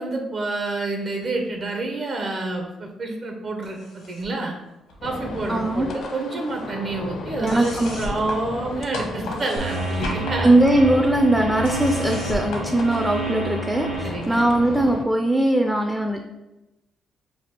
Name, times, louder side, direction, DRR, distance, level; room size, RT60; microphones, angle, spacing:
voice 1, 0.0-4.5 5.0-10.5 14.0-14.4, right 2 dB, 50° right, 2 dB, 0.6 m, -28 dB
sound 1, 3.6-4.4 4.7-5.7 6.0-13.5, left 1 dB, 90° left, 1.0 m, -36 dB
sound 2, 5.0-15.1, left 3 dB, 60° left, 0.5 m, -35 dB
voice 2, 5.5-5.9 7.4-8.0 10.4-16.2, right 1 dB, 10° right, 4 dB, 0.3 m, -20 dB
sound 3, 9.6-14.7, right 2 dB, 85° right, 0.7 m, -30 dB
3.3 x 2.4 x 4.2 m, 0.98 s
cardioid pair, 90°, 0 cm